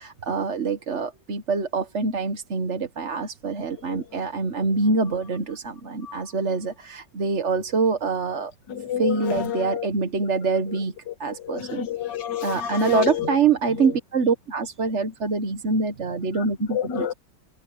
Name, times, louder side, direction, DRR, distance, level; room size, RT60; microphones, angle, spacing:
voice 1, 0.0-8.5 9.0-10.9 11.2-11.9 12.4-17.1, right 4 dB, 45° right, 1.4 m, -25 dB
voice 2, 8.7-9.9 11.1-13.4 13.8-13.9 16.7-17.1, left 10 dB, 75° left, 2.2 m, -29 dB
omnidirectional pair, 1.9 m